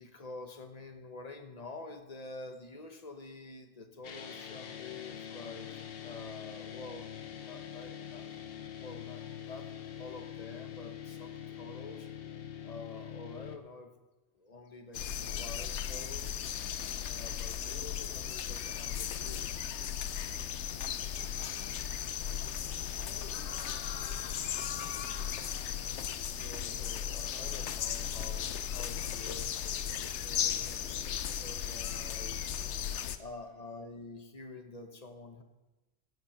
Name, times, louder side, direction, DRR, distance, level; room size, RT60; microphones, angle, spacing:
voice 1, 0.0-8.3 8.8-12.1 12.6-13.9 14.3-16.4 17.0-19.7 21.6-22.4 26.3-32.5 33.2-35.4, left 3 dB, 35° left, 6 dB, 1.1 m, -48 dB
sound 1, 4.0-13.6, left 9 dB, 60° left, 1.0 m, -44 dB
sound 2, 14.9-33.2, left 9 dB, 85° left, 1.0 m, -36 dB
voice 2, 22.9-23.8 26.8-26.9 32.4-33.8, equal, 85° right, -6 dB, 2.7 m, -58 dB
16.0 x 7.7 x 5.8 m, 1.1 s
omnidirectional pair, 1.1 m